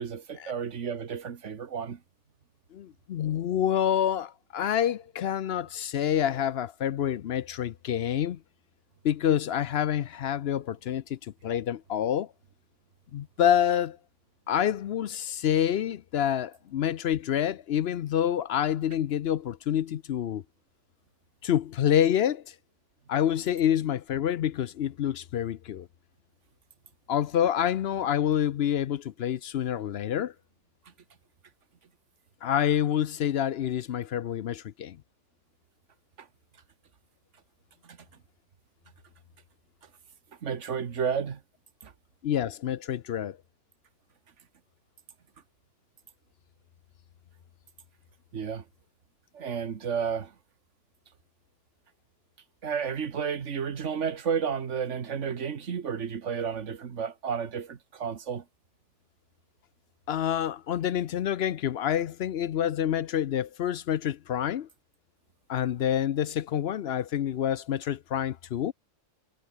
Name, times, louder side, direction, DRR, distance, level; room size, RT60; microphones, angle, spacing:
voice 1, 0.0-2.0 36.2-36.3 37.8-38.0 40.4-41.4 41.8-41.9 48.3-48.6 49.3-50.3 52.6-58.4, right 7 dB, 70° right, 1.7 m, -32 dB
voice 2, 2.7-8.4 9.0-12.3 13.1-14.0 14.5-20.4 21.4-22.5 23.1-25.9 27.1-30.3 32.4-35.0 42.2-43.4 60.1-64.7 65.5-68.7, left 10 dB, 60° left, 0.8 m, -27 dB
omnidirectional pair, 1.3 m